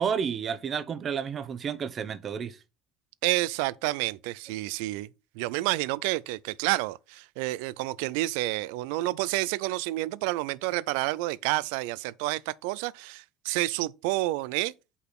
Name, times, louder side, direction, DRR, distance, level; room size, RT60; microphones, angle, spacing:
voice 1, 0.0-2.6, right 7 dB, 40° right, 0.8 m, -31 dB
voice 2, 3.2-5.1 5.4-14.7, right 18 dB, 85° right, 0.3 m, -29 dB
5.6 x 4.1 x 6.2 m
supercardioid pair, 95°, 0 cm